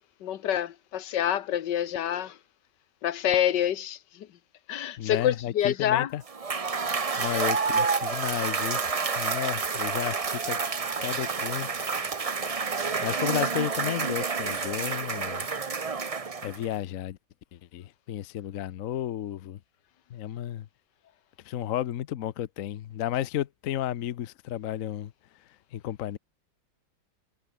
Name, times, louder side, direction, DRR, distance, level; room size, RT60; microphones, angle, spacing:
voice 1, 0.0-2.4 3.0-4.3 4.7-6.1, left 10 dB, 80° left, 1.6 m, -27 dB
voice 2, 5.0-6.2 7.2-8.9 9.2-10.6 11.0-11.9 12.5-12.6 13.0-15.5 16.4-17.2 17.5-19.6 20.1-20.7 21.4-25.1 25.7-26.2, left 12 dB, 60° left, 1.0 m, -33 dB
Cheering / Applause / Crowd, 6.3-16.7, right 4 dB, 30° right, 0.7 m, -29 dB
omnidirectional pair, 1.9 m